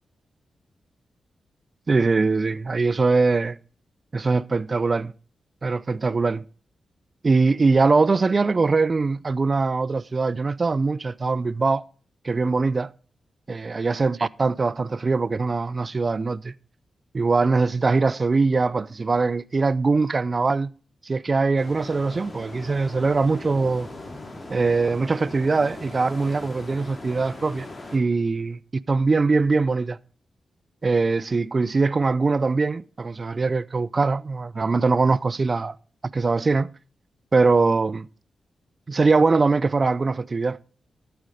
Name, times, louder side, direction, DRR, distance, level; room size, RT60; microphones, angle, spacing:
voice 1, 1.9-3.6 4.1-5.1 5.6-6.4 7.2-11.8 12.2-12.9 13.5-16.5 17.1-20.7 21.0-23.9 24.5-27.7 27.9-28.6 28.9-30.0 30.8-35.7 36.1-36.7 37.3-38.1 38.9-40.6, right 4 dB, 45° right, 0.5 m, -22 dB
sound 1, 21.6-28.0, left 2 dB, 35° left, 3.4 m, -39 dB
12.0 x 7.9 x 5.0 m
cardioid pair, 55°, 0 cm